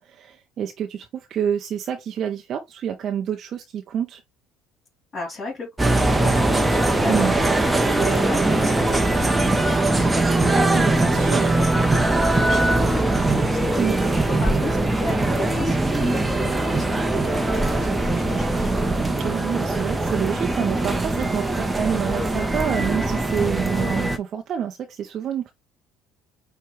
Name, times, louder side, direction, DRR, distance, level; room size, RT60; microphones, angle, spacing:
voice 1, 0.0-4.2 7.1-7.3 10.7-11.4 13.8-14.0 19.0-25.5, right 8 dB, 50° right, 0.6 m, -28 dB
voice 2, 5.1-11.6 11.9-18.7, left 3 dB, 35° left, 2.4 m, -35 dB
sound 1, 5.8-24.2, right 2 dB, 10° right, 0.7 m, -21 dB
5.5 x 2.2 x 3.2 m
hypercardioid pair, 75°, 0 cm